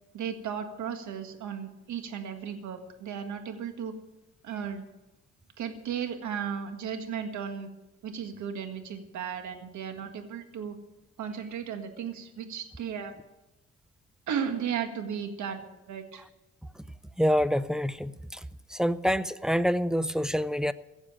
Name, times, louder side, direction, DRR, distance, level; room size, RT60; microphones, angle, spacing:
voice 1, 0.1-3.9 4.4-4.8 5.6-7.7 8.0-10.8 11.2-13.1 14.3-16.2, right 7 dB, 70° right, 7 dB, 1.8 m, -35 dB
voice 2, 17.2-18.4 18.7-20.7, equal, ahead, 13 dB, 0.5 m, -26 dB
16.0 x 7.3 x 8.8 m, 0.98 s
cardioid pair, 90°, 30 cm